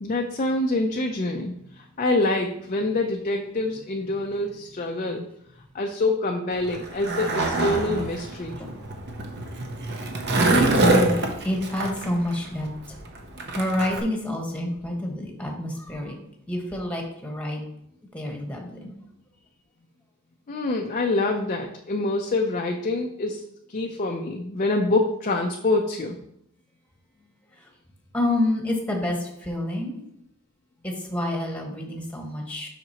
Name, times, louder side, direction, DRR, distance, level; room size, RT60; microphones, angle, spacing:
voice 1, 0.0-5.3 5.7-8.6 20.5-26.2, left 2 dB, 35° left, 2 dB, 0.5 m, -26 dB
Skateboard, 6.5-14.0, right 2 dB, 55° right, 0.9 m, -25 dB
voice 2, 10.5-11.2 11.4-12.7 13.5-16.1 16.5-17.6 18.1-18.9 28.1-30.0 30.8-32.7, left 1 dB, 5° left, 1 dB, 1.3 m, -27 dB
7.7 x 5.8 x 2.9 m, 0.74 s
head